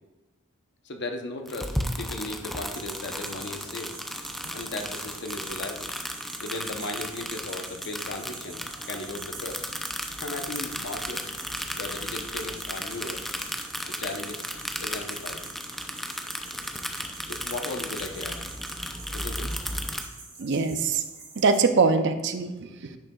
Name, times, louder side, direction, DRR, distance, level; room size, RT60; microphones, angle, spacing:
voice 1, 0.8-4.0 4.5-5.9 6.4-8.6 8.9-9.6 10.2-11.3 11.7-13.2 14.0-14.5 14.8-15.4 17.3-18.4 19.1-19.5, left 2 dB, 55° left, 4 dB, 0.8 m, -36 dB
sound 1, 1.5-20.0, equal, ahead, 0.5 m, -35 dB
sound 2, 2.7-21.7, right 3 dB, 40° right, 2.5 m, -46 dB
voice 2, 20.4-21.0 21.4-23.0, right 4 dB, 60° right, 9 dB, 0.5 m, -23 dB
10.5 x 6.4 x 2.3 m, 1.1 s
head